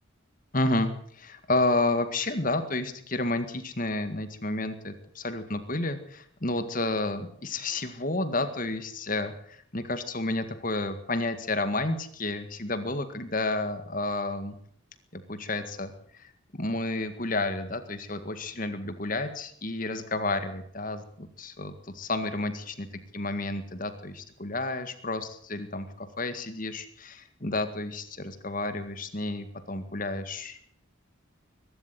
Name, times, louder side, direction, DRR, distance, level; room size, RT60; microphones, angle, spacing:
voice 1, 0.5-14.6 15.1-22.9 23.1-30.6, left 2 dB, 40° left, 9 dB, 1.9 m, -31 dB
23.0 x 12.5 x 9.2 m, 0.64 s
head